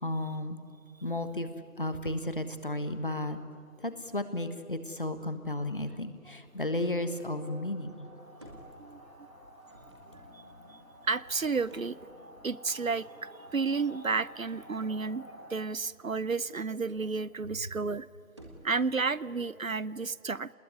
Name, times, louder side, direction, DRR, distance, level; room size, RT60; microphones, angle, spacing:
voice 1, 0.0-0.6 1.0-1.5 1.8-3.4 3.8-8.1, left 1 dB, 35° left, 10 dB, 1.4 m, -33 dB
sound 1, 6.4-15.5, equal, 90° right, 7.6 m, -52 dB
sound 2, 7.8-8.1 8.4-9.1 9.5-12.1 13.4-13.6 13.9-15.0 16.2-17.1 17.4-17.9 18.2-18.9, right 1 dB, 20° right, 1.8 m, -55 dB
voice 2, 8.8-9.3 10.3-10.4 11.1-12.0 12.4-15.2 15.5-18.1 18.6-20.5, right 4 dB, 65° right, 20 dB, 0.7 m, -31 dB
27.0 x 20.5 x 9.6 m, 2.5 s
figure-of-eight pair, 165°, 44 cm